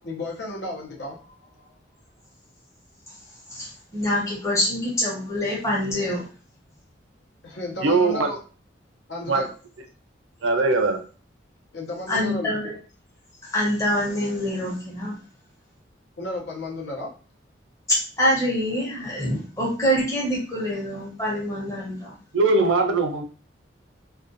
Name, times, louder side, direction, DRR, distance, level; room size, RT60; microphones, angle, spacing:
voice 1, 0.0-1.8 7.4-8.4 9.1-9.5 11.7-12.5 16.2-17.1, left 1 dB, 65° left, 0 dB, 0.7 m, -33 dB
voice 2, 3.5-6.2 12.1-12.7 13.5-15.2 17.9-22.1, equal, 15° left, -5 dB, 0.8 m, -25 dB
voice 3, 7.8-8.3 9.3-9.5 10.4-11.0 22.3-23.2, right 3 dB, 90° right, 6 dB, 0.5 m, -20 dB
2.4 x 2.2 x 2.6 m, 0.36 s
head